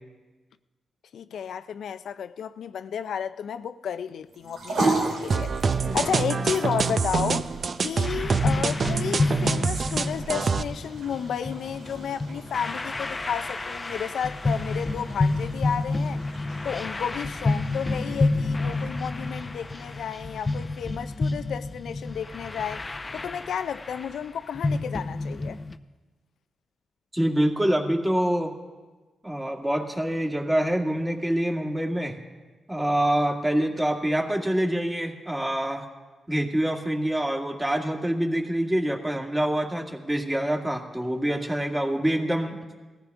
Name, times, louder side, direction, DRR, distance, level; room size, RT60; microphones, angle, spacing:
voice 1, 1.1-16.2 16.6-22.9 23.1-25.6, left 8 dB, 75° left, 0.4 m, -32 dB
sound 1, 4.3-20.8, right 2 dB, 85° right, 2.4 m, -36 dB
sound 2, 5.3-10.6, right 5 dB, 55° right, 0.6 m, -26 dB
sound 3, 8.0-25.8, left 2 dB, 30° left, 0.7 m, -29 dB
voice 2, 27.1-28.5 29.2-32.2 32.7-35.9 36.3-42.6, right 1 dB, 15° right, 1.9 m, -26 dB
19.0 x 14.5 x 3.5 m
cardioid pair, 70°, 0 cm